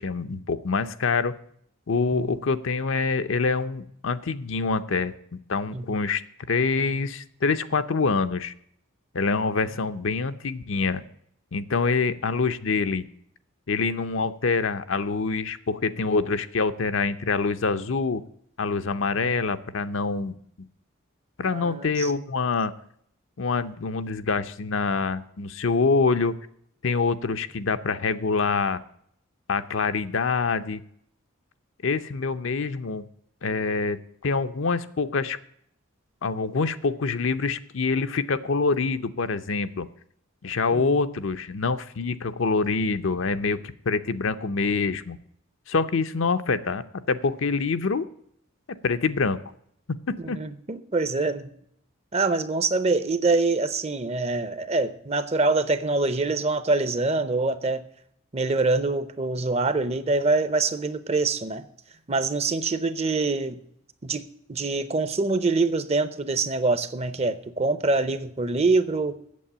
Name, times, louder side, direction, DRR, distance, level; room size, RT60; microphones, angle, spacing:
voice 1, 0.0-1.3 1.9-6.2 6.5-8.5 9.1-11.0 11.5-13.1 13.7-18.2 18.6-20.3 21.4-22.7 23.4-26.4 26.8-28.8 29.5-30.8 31.8-33.0 33.4-35.4 36.2-39.9 40.4-43.6 43.9-45.2 45.7-48.0 48.8-49.4 50.3-50.4, left 4 dB, 65° left, 10 dB, 0.6 m, -25 dB
voice 2, 21.5-22.1 40.7-41.0 50.2-51.5 52.1-57.8 58.3-61.6 62.1-63.6 64.0-64.2 64.5-69.1, right 3 dB, 30° right, 13 dB, 0.7 m, -25 dB
8.5 x 7.5 x 8.6 m, 0.68 s
head